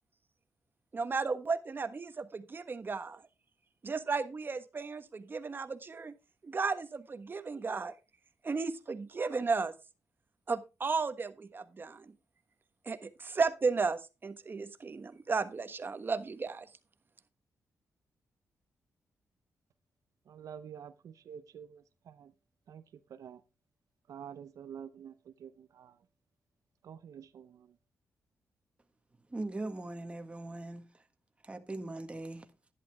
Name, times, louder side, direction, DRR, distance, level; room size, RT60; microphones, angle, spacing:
voice 1, 0.9-3.2 3.8-6.1 6.4-7.9 8.4-9.7 10.5-12.1 12.8-16.7, right 4 dB, 40° right, 1.3 m, -34 dB
voice 2, 20.3-22.3 22.7-23.4 24.1-26.0 26.8-27.8, right 8 dB, 75° right, 0.7 m, -48 dB
voice 3, 29.3-31.0 31.4-32.5, right 2 dB, 20° right, 1.6 m, -40 dB
11.0 x 11.0 x 3.5 m
cardioid pair, 85°, 6 cm